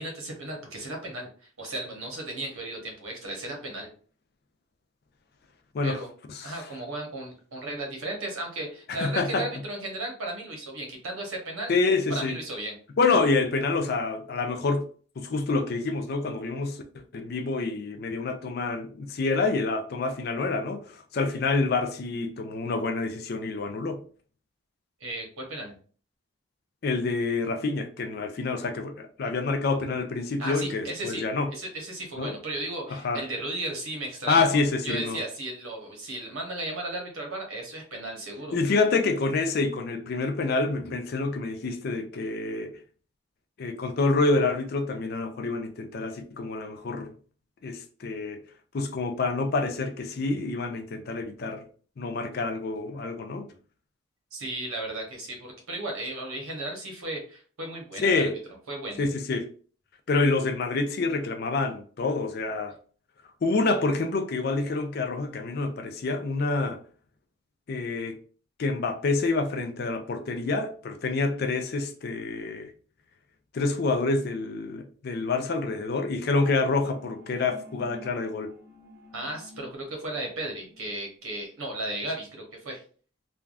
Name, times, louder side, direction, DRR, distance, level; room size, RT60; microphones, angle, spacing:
voice 1, 0.0-3.9 5.8-6.1 6.4-11.7 12.1-12.7 25.0-25.8 30.4-31.2 31.5-34.5 34.8-38.8 54.3-58.3 58.7-59.1 79.1-82.8, right 2 dB, 90° right, 1.0 m, -35 dB
voice 2, 8.9-9.5 11.7-12.4 13.0-14.8 15.2-16.8 17.1-20.8 21.1-24.0 26.8-31.5 32.2-32.4 32.9-33.2 34.3-35.2 38.5-42.7 43.6-47.1 47.6-48.4 48.7-51.6 52.0-53.5 58.0-58.4 59.0-59.5 60.1-62.7 63.4-66.8 67.7-68.2 68.6-72.7 73.5-78.5, left 3 dB, 50° left, 0.4 m, -27 dB
sound 1, 76.2-80.9, equal, 50° right, 1.4 m, -49 dB
3.3 x 2.3 x 2.3 m
head